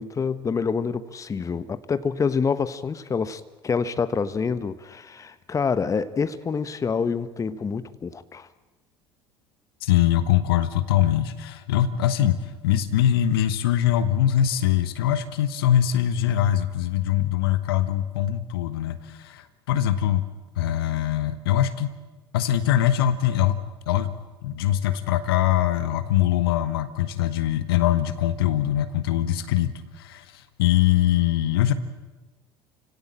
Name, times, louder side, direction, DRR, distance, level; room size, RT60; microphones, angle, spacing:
voice 1, 0.0-8.5, left 5 dB, 25° left, 1.1 m, -27 dB
voice 2, 9.8-12.4 12.6-20.2 20.6-21.9 22.3-23.6 23.9-24.1 24.4-29.7 30.0-31.7, left 11 dB, 70° left, 1.3 m, -22 dB
29.0 x 17.0 x 8.8 m
figure-of-eight pair, 65°, 13 cm